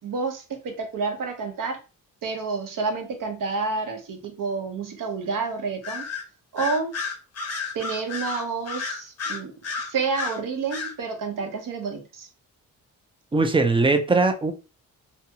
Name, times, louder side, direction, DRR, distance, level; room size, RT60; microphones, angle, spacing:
voice 1, 0.0-1.8 2.2-6.1 6.5-6.9 7.7-9.5 9.9-12.3, right 4 dB, 65° right, 0.7 m, -29 dB
Bird vocalization bird call bird song, 5.8-6.2 6.6-10.4 10.7-10.9, left 4 dB, 45° left, 0.6 m, -31 dB
voice 2, 13.3-14.5, right 3 dB, 15° right, 0.3 m, -20 dB
2.6 x 2.3 x 2.7 m
cardioid pair, 110°, 35 cm